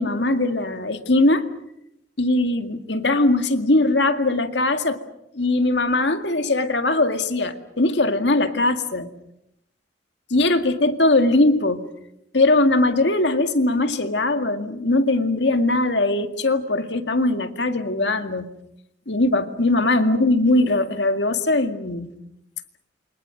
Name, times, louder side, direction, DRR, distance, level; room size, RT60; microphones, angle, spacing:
voice 1, 0.0-1.5 2.2-5.0 5.3-9.1 10.3-11.8 12.3-18.5 19.1-22.1, left 2 dB, 70° left, 7 dB, 2.1 m, -20 dB
29.0 x 24.5 x 6.5 m, 0.78 s
head